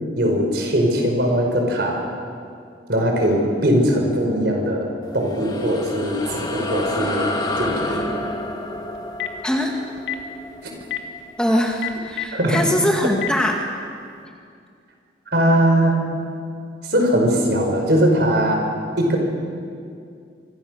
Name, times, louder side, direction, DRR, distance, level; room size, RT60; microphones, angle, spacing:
voice 1, 0.2-2.0 2.9-7.3 7.6-8.1 12.3-12.7 13.0-13.1 15.3-16.0 16.8-18.7 19.0-19.2, equal, 60° right, 2 dB, 5.2 m, -20 dB
sound 1, 5.0-11.8, left 1 dB, 20° left, 2.2 m, -30 dB
Telephone, 8.9-9.4 10.0-10.2 10.8-11.0 11.7-12.6 13.1-13.3, left 14 dB, 75° left, 2.0 m, -26 dB
voice 2, 9.4-9.8 11.4-13.7, left 1 dB, 5° left, 1 dB, 1.9 m, -22 dB
26.0 x 25.5 x 6.6 m, 2.3 s
head